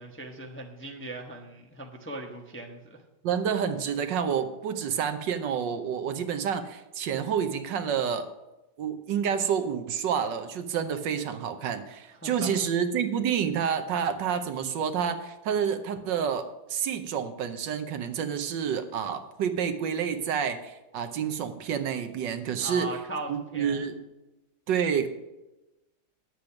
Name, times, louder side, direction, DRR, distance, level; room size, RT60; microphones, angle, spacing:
voice 1, 0.0-3.0 12.2-12.6 22.6-23.8, right 2 dB, 10° left, 1 dB, 0.7 m, -39 dB
voice 2, 3.2-8.3 8.8-22.9 23.3-24.0 24.7-25.1, right 7 dB, 70° right, 9 dB, 1.4 m, -29 dB
10.0 x 7.8 x 5.8 m, 0.99 s
omnidirectional pair, 2.1 m